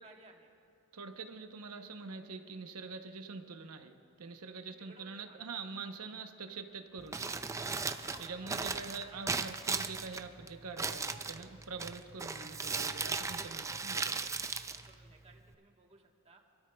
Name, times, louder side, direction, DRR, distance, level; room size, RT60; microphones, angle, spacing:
voice 1, 0.0-0.5 4.7-5.5 7.7-9.3 13.9-14.5 14.8-16.4, right 2 dB, 30° right, 1 dB, 1.2 m, -59 dB
voice 2, 0.9-7.3 8.2-14.2, right 4 dB, 80° right, 6 dB, 0.8 m, -45 dB
Crumpling crinkling, 7.0-15.5, right 4 dB, 15° right, 0.3 m, -38 dB
29.5 x 12.5 x 2.3 m, 2.5 s
head